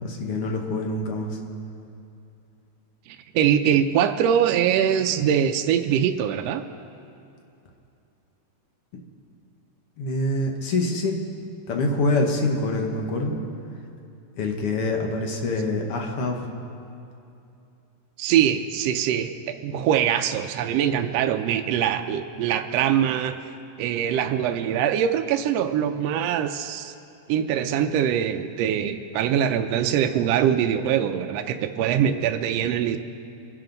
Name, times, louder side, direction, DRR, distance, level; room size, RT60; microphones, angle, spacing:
voice 1, 0.0-1.4 10.0-11.2 11.7-13.4 14.4-16.5, left 2 dB, 55° left, 2 dB, 1.9 m, -25 dB
voice 2, 3.1-6.6 18.2-23.3 23.8-26.9 27.3-33.0, right 9 dB, 80° right, 6 dB, 1.5 m, -23 dB
25.0 x 11.0 x 3.9 m, 2.7 s
omnidirectional pair, 3.4 m